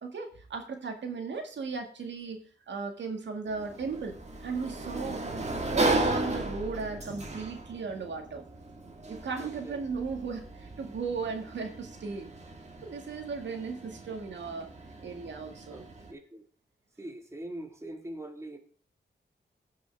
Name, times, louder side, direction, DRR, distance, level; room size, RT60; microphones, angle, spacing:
voice 1, 0.0-4.2 4.4-5.2 5.7-8.5 9.1-12.3 12.8-14.7 15.0-15.9, right 4 dB, 85° right, 4 dB, 1.9 m, -36 dB
Sliding door, 3.5-16.1, right 2 dB, 40° right, 1.8 m, -36 dB
voice 2, 9.3-9.9 13.0-13.1 15.7-16.4 17.0-18.6, right 1 dB, 15° right, 4 dB, 1.8 m, -43 dB
16.0 x 6.0 x 3.4 m, 0.43 s
wide cardioid pair, 115°, 18 cm